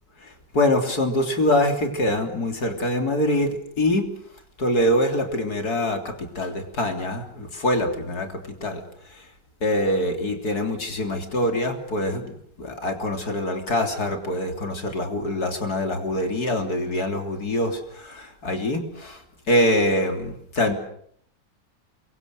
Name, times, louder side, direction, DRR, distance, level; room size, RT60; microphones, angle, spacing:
voice 1, 0.5-4.0 4.6-8.3 8.6-8.8 9.6-19.2 19.5-20.7, left 1 dB, 60° left, 5 dB, 3.9 m, -24 dB
27.5 x 24.0 x 6.7 m, 0.66 s
omnidirectional pair, 1.8 m